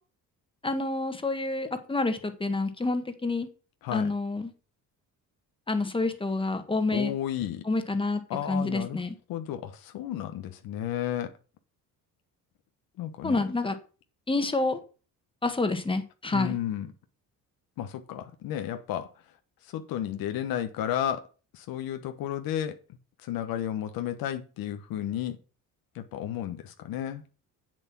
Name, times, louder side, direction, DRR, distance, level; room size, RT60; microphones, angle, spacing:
voice 1, 0.6-3.5 3.9-4.5 5.7-7.1 7.6-8.2 8.5-9.1 13.2-13.7 14.3-14.8 15.4-16.6, left 3 dB, 15° left, 1.4 m, -28 dB
voice 2, 6.9-7.6 8.3-9.0 9.3-11.3 13.0-13.4 16.3-16.9 17.8-19.1 19.6-21.2 21.5-22.8 23.2-25.4 25.9-27.2, left 11 dB, 80° left, 1.1 m, -32 dB
8.0 x 7.5 x 6.0 m
cardioid pair, 115°, 35 cm